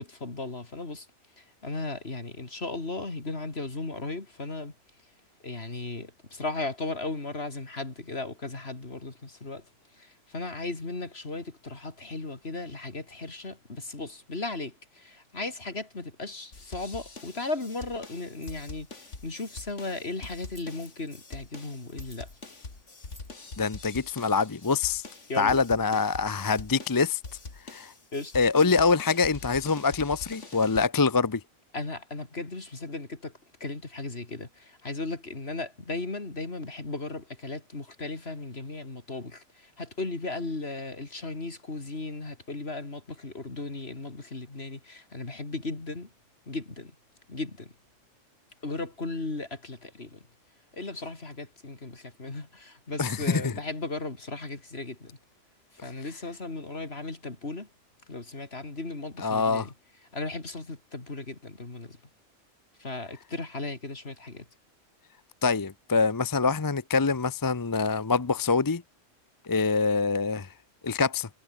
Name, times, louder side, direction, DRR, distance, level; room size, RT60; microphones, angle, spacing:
voice 1, 0.0-5.2 5.4-22.4 25.3-25.6 28.1-28.4 31.7-46.1 46.5-47.0 47.3-47.8 48.6-50.3 50.7-55.2 55.7-57.7 58.1-59.7 60.1-62.0 62.8-64.5, left 2 dB, 55° left, 3.6 m, -36 dB
sound 1, 16.5-30.9, left 3 dB, 75° left, 3.4 m, -44 dB
sound 2, 18.3-18.7 19.3-19.9 20.3-21.4 21.8-24.0, equal, 15° right, 7.2 m, -57 dB
voice 2, 23.6-25.0 25.4-27.2 27.7-27.9 28.3-31.4 53.0-53.5 59.2-59.6 65.4-68.8 69.4-70.5 70.8-71.3, left 4 dB, 25° left, 0.5 m, -25 dB
omnidirectional pair, 1.3 m